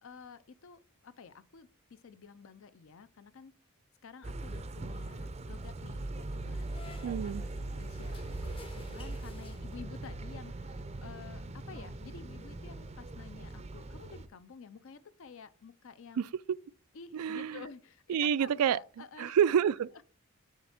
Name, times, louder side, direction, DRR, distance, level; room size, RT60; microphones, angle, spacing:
voice 1, 0.0-3.5 4.0-16.2 16.9-19.4, left 5 dB, 60° left, 0.5 m, -51 dB
sound 1, 4.2-14.3, right 2 dB, 30° right, 0.5 m, -41 dB
sound 2, 6.2-10.1, left 3 dB, 25° left, 0.6 m, -55 dB
voice 2, 7.0-7.4 16.2-16.3 17.1-17.6 18.1-18.8 19.2-20.0, right 8 dB, 85° right, 0.3 m, -28 dB
7.4 x 3.4 x 5.7 m
head